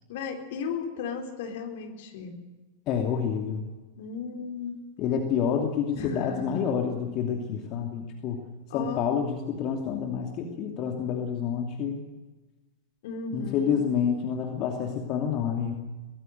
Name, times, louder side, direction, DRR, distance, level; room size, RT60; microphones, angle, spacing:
voice 1, 0.1-2.3 3.9-4.8 5.9-6.7 8.7-9.0 13.0-13.8, left 5 dB, 55° left, 3 dB, 4.1 m, -35 dB
voice 2, 2.9-3.6 5.0-8.4 8.7-12.0 13.3-15.7, left 7 dB, 35° left, 2 dB, 2.7 m, -28 dB
23.5 x 19.0 x 8.0 m, 1.2 s
figure-of-eight pair, 90°, 0 cm